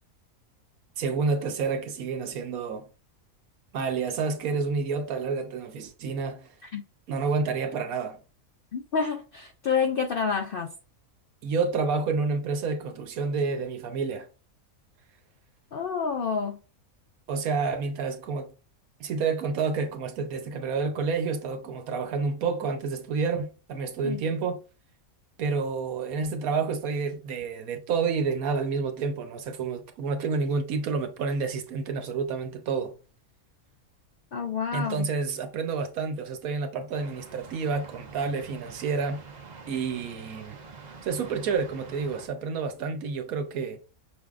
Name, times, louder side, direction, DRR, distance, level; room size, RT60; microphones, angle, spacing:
voice 1, 1.0-2.9 3.7-6.5 7.1-8.2 11.4-14.3 17.3-18.5 19.0-24.6 25.4-32.9 34.7-39.2 39.7-40.6 40.8-43.8, right 4 dB, 80° right, 1.2 m, -29 dB
voice 2, 8.7-10.7 15.7-16.6 24.0-24.2 34.3-35.1, left 6 dB, 75° left, 0.5 m, -28 dB
sound 1, 36.9-42.3, right 5 dB, 40° right, 0.7 m, -45 dB
6.1 x 3.5 x 2.4 m
omnidirectional pair, 1.5 m